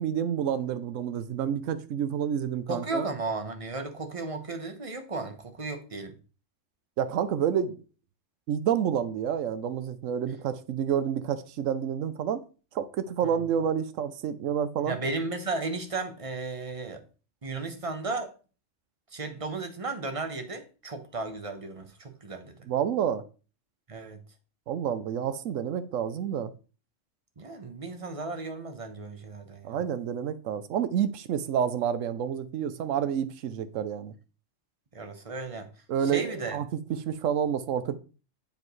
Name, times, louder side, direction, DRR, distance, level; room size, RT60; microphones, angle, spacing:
voice 1, 0.0-3.1 7.0-7.8 8.5-12.4 12.7-14.9 22.7-23.2 24.7-26.5 29.6-34.1 35.9-36.7 37.1-38.0, right 8 dB, 85° right, 1.1 m, -29 dB
voice 2, 2.7-6.2 13.2-13.5 14.9-17.0 17.4-18.3 19.1-22.6 23.9-24.2 27.4-29.8 34.9-35.7 36.0-36.6, right 3 dB, 30° right, 1.0 m, -35 dB
7.5 x 6.9 x 3.2 m
omnidirectional pair, 1.3 m